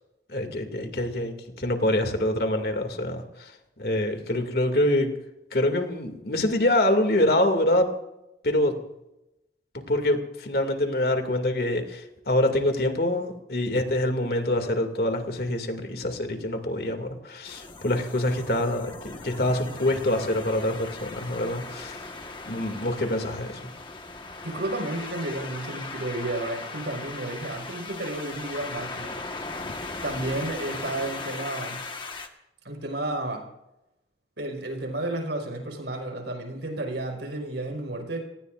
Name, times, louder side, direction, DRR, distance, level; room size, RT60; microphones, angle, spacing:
voice 1, 0.3-3.5 3.8-5.1 5.5-7.9 8.4-8.8 9.7-22.0 22.4-23.7, left 1 dB, 60° left, 4 dB, 2.5 m, -25 dB
sound 1, 17.5-32.3, left 3 dB, 25° left, 1.5 m, -38 dB
voice 2, 24.4-29.2 30.0-31.8 32.6-33.4 34.4-38.2, right 2 dB, 85° right, 2 dB, 5.4 m, -32 dB
28.0 x 19.0 x 2.6 m, 0.90 s
head